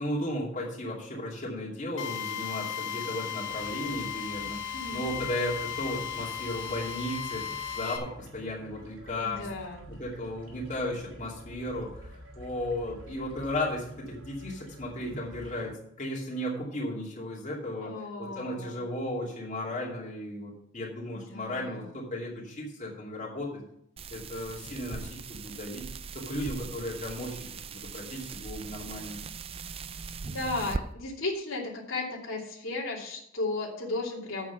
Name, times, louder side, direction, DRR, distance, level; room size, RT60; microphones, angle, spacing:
voice 1, 0.0-4.6 4.9-9.5 9.9-15.7 16.0-17.9 18.2-23.6 24.1-25.8 26.1-27.5 27.7-29.2, left 1 dB, 40° left, -3 dB, 2.7 m, -35 dB
Drill, 2.0-8.0, left 9 dB, 70° left, 1.9 m, -36 dB
sound 1, 3.5-15.7, equal, 90° right, 2.8 m, -49 dB
voice 2, 4.7-5.1 9.2-9.9 17.8-18.8 21.1-21.9 30.2-34.5, left 2 dB, 90° left, -2 dB, 2.8 m, -35 dB
sound 2, 24.0-30.8, right 4 dB, 30° right, 0.4 m, -40 dB
8.4 x 7.6 x 5.9 m, 0.73 s
head